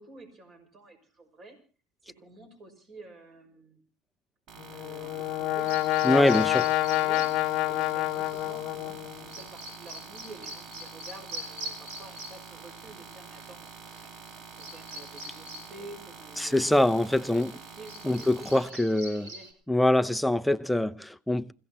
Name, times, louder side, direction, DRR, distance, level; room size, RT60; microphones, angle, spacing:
voice 1, 0.0-1.6 2.1-3.8 4.7-5.7 6.2-7.3 7.7-13.8 14.6-18.5 18.7-18.8 19.2-19.5, right 2 dB, 35° right, 5.8 m, -49 dB
sound 1, 4.5-18.7, right 6 dB, 55° right, 1.8 m, -47 dB
Brass instrument, 4.6-9.4, left 16 dB, 60° left, 0.8 m, -28 dB
Bird vocalization bird call bird song, 5.6-19.5, right 1 dB, 80° right, 6.1 m, -45 dB
voice 2, 6.0-6.7 16.4-17.5 18.0-19.3 19.7-21.5, left 1 dB, ahead, 0.7 m, -24 dB
28.0 x 16.0 x 2.9 m
supercardioid pair, 110°, 0 cm